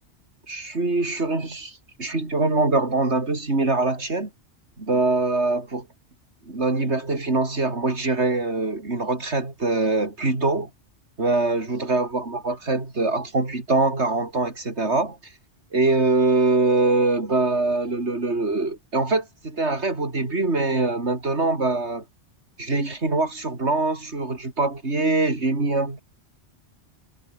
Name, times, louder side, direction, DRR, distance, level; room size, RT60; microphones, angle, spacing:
voice 1, 0.5-4.3 4.8-5.9 6.5-10.7 11.2-15.2 15.7-22.0 22.6-26.0, right 2 dB, 70° right, 4.3 m, -23 dB
omnidirectional pair, 1.2 m